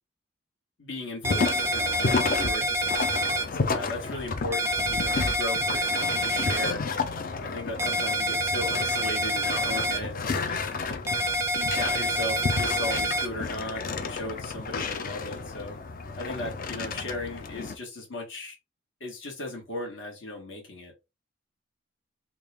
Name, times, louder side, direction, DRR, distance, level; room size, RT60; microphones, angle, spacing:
voice 1, 0.8-6.8 7.4-15.8 16.2-18.6 19.0-20.9, left 1 dB, 65° left, 1.4 m, -37 dB
sound 1, 1.2-17.8, left 4 dB, 45° left, 0.4 m, -32 dB
sound 2, 1.2-3.4 4.5-6.7 7.8-10.0 11.1-13.3, right 1 dB, 15° right, 0.4 m, -27 dB
3.6 x 2.3 x 3.3 m
head